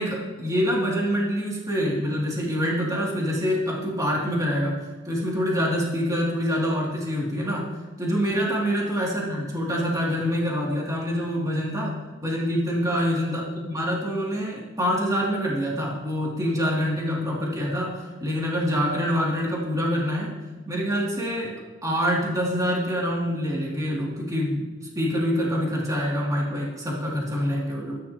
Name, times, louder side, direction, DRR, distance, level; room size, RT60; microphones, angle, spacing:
voice 1, 0.0-7.7 8.0-20.3 20.7-21.6 21.8-24.7 24.9-28.0, equal, 15° right, -4 dB, 2.6 m, -26 dB
22.5 x 11.0 x 2.9 m, 1.2 s
head